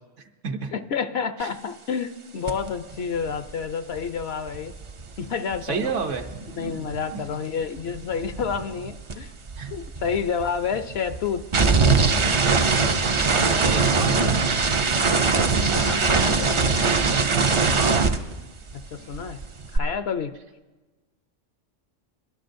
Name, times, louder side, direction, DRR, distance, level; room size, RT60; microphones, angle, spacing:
voice 1, 0.2-0.7 1.4-1.5 5.6-6.3 7.3-7.5 9.6-9.7 13.3-14.5 17.7-18.1, right 5 dB, 75° right, 6 dB, 1.2 m, -30 dB
voice 2, 0.7-4.7 5.2-5.9 6.6-9.3 9.7-11.4 15.6-16.8 18.7-19.4 19.7-20.3, left 6 dB, 65° left, 10 dB, 0.8 m, -29 dB
sound 1, 2.5-2.7 2.9-7.3 7.6-18.9 19.1-19.8, right 4 dB, 45° right, 0.4 m, -23 dB
22.0 x 12.5 x 2.6 m, 1.2 s
omnidirectional pair, 1.3 m